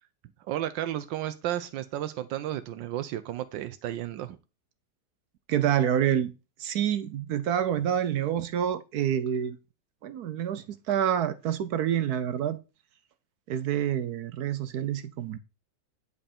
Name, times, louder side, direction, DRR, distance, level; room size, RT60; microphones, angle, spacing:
voice 1, 0.5-4.4, right 12 dB, 85° right, 1.4 m, -33 dB
voice 2, 5.5-6.3 6.6-9.6 10.0-12.6 13.5-15.4, right 10 dB, 65° right, 1.1 m, -27 dB
9.8 x 5.3 x 4.4 m
omnidirectional pair, 1.9 m